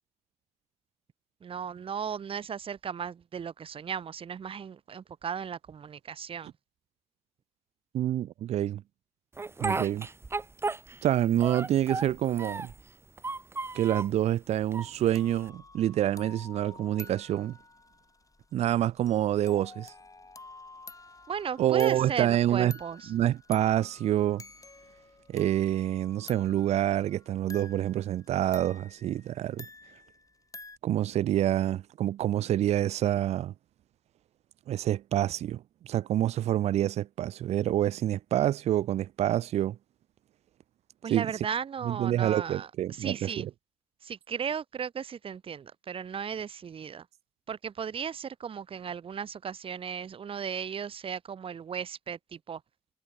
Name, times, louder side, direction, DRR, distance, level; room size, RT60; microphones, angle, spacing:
voice 1, 1.4-6.5 21.3-23.1 41.0-43.5 44.0-47.1 47.5-52.6, right 7 dB, 60° right, 0.9 m, -36 dB
voice 2, 7.9-8.8 9.6-10.1 11.0-12.7 13.7-17.6 18.5-19.9 21.6-22.7 23.1-24.4 25.3-29.6 30.8-33.5 34.7-39.8 41.1-41.3 41.8-43.5, right 12 dB, 85° right, 0.8 m, -27 dB
Speech, 9.4-11.1 11.4-12.8 13.2-14.2 14.7-15.5, right 3 dB, 25° right, 0.4 m, -34 dB
sound 1, 15.1-30.8, left 3 dB, 30° left, 4.4 m, -50 dB
supercardioid pair, 55°, 11 cm